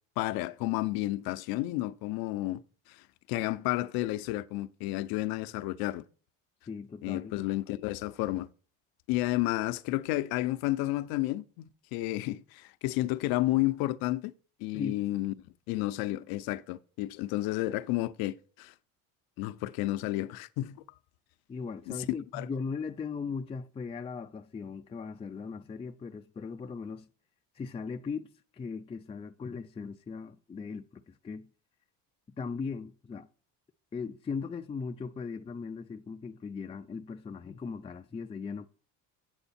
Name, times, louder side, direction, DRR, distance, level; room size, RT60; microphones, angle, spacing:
voice 1, 0.2-2.6 2.9-3.0 3.3-6.0 7.0-8.5 9.1-14.3 14.6-15.3 15.7-18.7 19.4-20.8 21.9-22.0 22.3-22.5, left 17 dB, 70° left, 0.7 m, -31 dB
voice 2, 6.7-7.3 14.7-15.0 21.5-27.1 27.5-31.5 32.3-33.3 33.9-38.7, left 5 dB, 15° left, 0.4 m, -38 dB
8.0 x 8.0 x 4.2 m
supercardioid pair, 100°, 37 cm